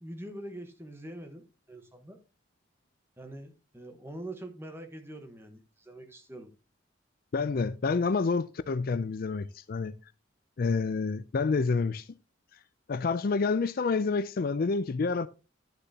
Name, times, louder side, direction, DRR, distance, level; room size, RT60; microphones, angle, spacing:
voice 1, 0.0-2.2 3.2-6.5, right 1 dB, 10° right, 1.1 m, -44 dB
voice 2, 7.3-9.9 10.6-12.1 12.9-15.3, left 4 dB, 45° left, 0.4 m, -28 dB
11.5 x 6.8 x 2.8 m
head